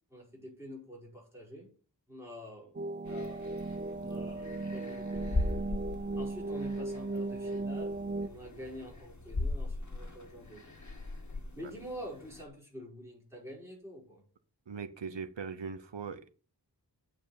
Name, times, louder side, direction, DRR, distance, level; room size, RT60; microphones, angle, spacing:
voice 1, 0.1-1.7 2.1-3.5 4.0-5.5 6.2-10.8 11.6-14.2, equal, 5° right, 5.2 m, -47 dB
sound 1, 2.7-8.3, right 3 dB, 25° right, 0.6 m, -36 dB
sound 2, 3.1-12.5, left 2 dB, 40° left, 1.8 m, -39 dB
voice 2, 14.7-16.3, right 5 dB, 90° right, 0.9 m, -40 dB
8.7 x 4.8 x 7.1 m
wide cardioid pair, 50°, 42 cm